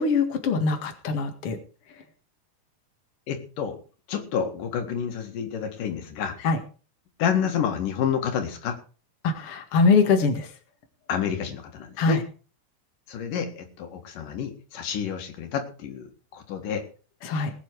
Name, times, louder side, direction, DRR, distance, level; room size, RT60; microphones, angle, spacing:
voice 1, 0.0-1.6 6.4-6.6 9.2-10.5 12.0-12.2 17.2-17.5, left 4 dB, 50° left, 5 dB, 2.6 m, -22 dB
voice 2, 3.3-3.8 4.1-6.4 7.2-8.8 11.1-12.2 13.1-16.8, left 8 dB, 85° left, 5 dB, 3.5 m, -29 dB
19.5 x 9.1 x 4.8 m, 0.37 s
omnidirectional pair, 3.7 m